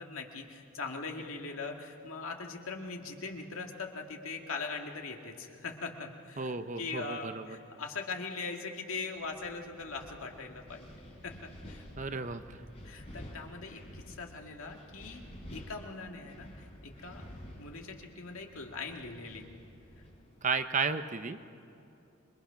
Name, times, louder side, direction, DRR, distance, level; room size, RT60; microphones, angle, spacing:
voice 1, 0.0-10.9 11.2-11.8 12.8-17.3 17.6-19.4, left 4 dB, 75° left, 2 dB, 2.1 m, -41 dB
voice 2, 6.4-7.5 12.0-12.6 20.4-21.4, right 4 dB, 35° right, 10 dB, 0.7 m, -33 dB
Wind, 9.1-20.7, equal, 30° left, 3.8 m, -50 dB
27.0 x 22.5 x 5.8 m, 2.7 s
head